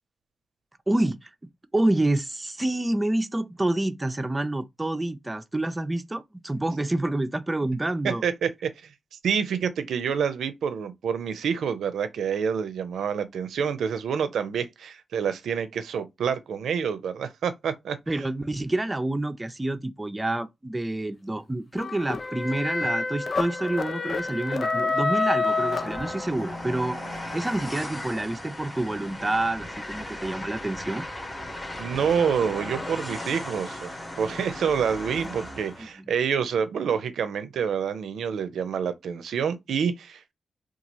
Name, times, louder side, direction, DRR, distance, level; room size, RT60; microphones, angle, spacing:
voice 1, 0.9-1.3 1.7-8.2 18.1-27.0 27.3-31.1 35.8-36.0, right 1 dB, 15° right, 0.4 m, -28 dB
voice 2, 8.2-8.9 9.2-18.2 31.8-40.3, right 7 dB, 90° right, 0.4 m, -27 dB
sound 1, 21.7-26.6, left 3 dB, 50° left, 0.4 m, -28 dB
Train, 25.4-35.9, left 1 dB, 20° left, 0.9 m, -37 dB
2.9 x 2.3 x 2.5 m
cardioid pair, 85°, 0 cm